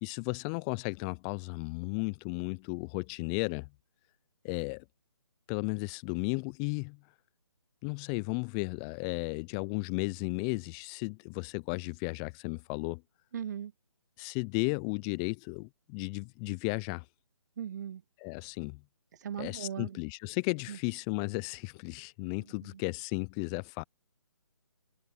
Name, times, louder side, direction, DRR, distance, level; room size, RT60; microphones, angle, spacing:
voice 1, 0.0-3.7 4.4-4.8 5.5-7.0 7.8-13.0 14.2-17.1 18.2-18.8 19.4-23.8, left 33 dB, 15° left, 0.6 m, -34 dB
voice 2, 13.3-13.7 17.6-18.0 19.1-20.0 20.7-20.8 22.6-22.8, right 9 dB, 35° right, 0.7 m, -38 dB
figure-of-eight pair, 150°, 16 cm